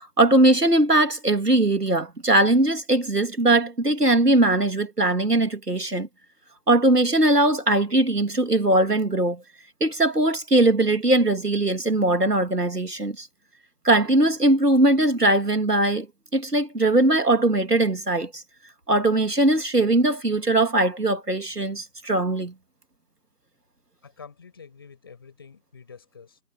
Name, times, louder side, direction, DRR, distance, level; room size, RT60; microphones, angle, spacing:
voice 1, 0.0-6.1 6.7-9.4 9.8-13.3 13.8-16.1 16.3-18.4 18.9-22.5, right 2 dB, 75° right, 2.7 m, -20 dB
voice 2, 24.0-26.4, left 6 dB, 15° left, 6.0 m, -47 dB
figure-of-eight pair, 170°, 48 cm